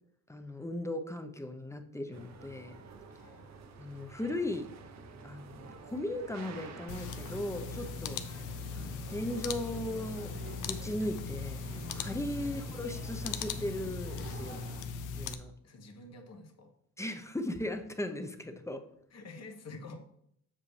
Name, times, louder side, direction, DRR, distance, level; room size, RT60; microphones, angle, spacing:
voice 1, 0.3-2.7 3.8-4.7 5.2-8.2 8.7-14.6 15.1-15.5 17.0-18.9, left 1 dB, 10° left, 6 dB, 0.7 m, -37 dB
sound 1, 2.1-14.8, right 4 dB, 60° right, 0.9 m, -50 dB
voice 2, 3.1-3.5 12.4-12.7 15.6-16.7 19.1-20.0, left 2 dB, 60° left, 3 dB, 1.3 m, -48 dB
sound 2, 6.9-15.3, left 5 dB, 90° left, 0.7 m, -39 dB
7.5 x 6.7 x 3.3 m, 0.72 s
cardioid pair, 90°, 30 cm